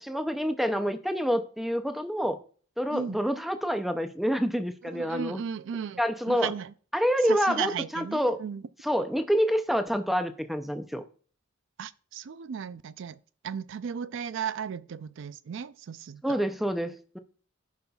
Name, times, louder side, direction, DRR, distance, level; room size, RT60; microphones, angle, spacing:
voice 1, 0.0-2.4 2.8-5.4 6.0-6.5 6.9-8.4 8.8-11.0 16.2-17.2, equal, ahead, 0.5 m, -27 dB
voice 2, 4.8-6.0 6.3-6.7 7.2-8.6 11.8-16.4, right 7 dB, 65° right, 0.4 m, -35 dB
15.5 x 5.4 x 2.3 m
head